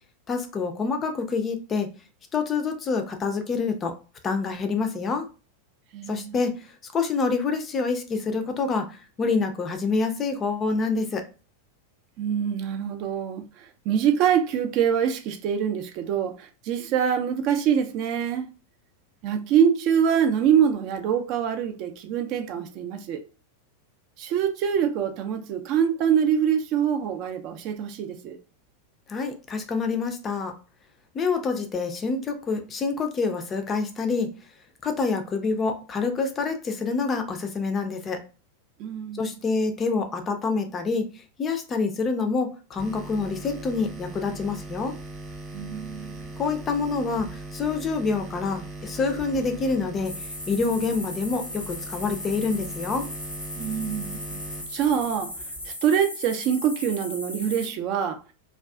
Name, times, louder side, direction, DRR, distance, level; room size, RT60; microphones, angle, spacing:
voice 1, 0.3-1.9 2.3-4.0 4.2-5.3 6.1-11.2 29.1-30.6 31.1-34.3 34.8-38.2 39.1-44.9 46.4-53.1, left 4 dB, 25° left, 0.4 m, -27 dB
voice 2, 5.9-6.3 12.2-18.5 19.2-23.2 24.2-28.4 38.8-39.2 45.5-46.3 53.6-54.4 54.7-55.3 55.7-58.2, right 8 dB, 40° right, 0.4 m, -25 dB
sound 1, 42.8-55.7, right 2 dB, 20° right, 0.8 m, -40 dB
sound 2, 50.0-57.7, left 1 dB, 85° left, 0.7 m, -37 dB
2.4 x 2.3 x 2.2 m
figure-of-eight pair, 90°, 0 cm